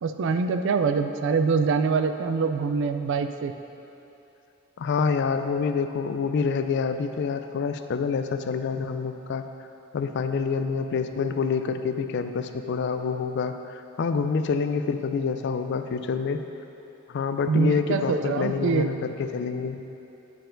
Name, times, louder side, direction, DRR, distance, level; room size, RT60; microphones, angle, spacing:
voice 1, 0.0-3.5 17.4-18.9, right 5 dB, 60° right, 7 dB, 0.3 m, -24 dB
voice 2, 4.8-9.4 9.9-16.4 17.1-19.8, left 5 dB, 50° left, 8 dB, 0.3 m, -27 dB
9.7 x 4.5 x 3.8 m, 2.9 s
head